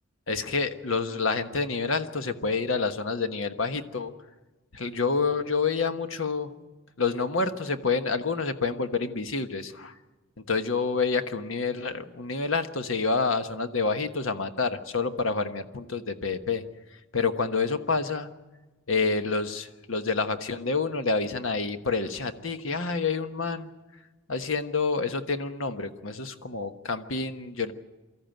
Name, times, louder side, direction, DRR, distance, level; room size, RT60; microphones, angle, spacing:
voice 1, 0.3-4.1 4.7-6.5 7.0-9.9 10.5-16.6 17.1-18.3 18.9-23.7 24.3-27.7, left 4 dB, 75° left, 8 dB, 1.3 m, -28 dB
24.0 x 14.0 x 9.1 m, 1.2 s
head